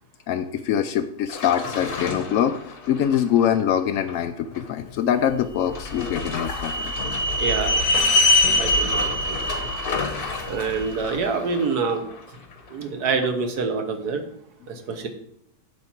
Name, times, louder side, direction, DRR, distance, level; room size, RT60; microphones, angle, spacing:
voice 1, 0.3-2.6 2.9-6.9, left 9 dB, 75° left, 7 dB, 0.7 m, -23 dB
sound 1, 1.3-4.9 5.2-5.3 5.7-13.3 13.6-13.7, left 4 dB, 40° left, 1.0 m, -34 dB
sound 2, 5.7-10.9, left 1 dB, 60° left, 1.2 m, -23 dB
voice 2, 7.4-8.0 8.6-9.4 10.5-12.0 12.7-14.2 14.7-15.1, right 4 dB, 65° right, 6 dB, 1.6 m, -26 dB
8.5 x 7.2 x 4.4 m, 0.71 s
omnidirectional pair, 1.8 m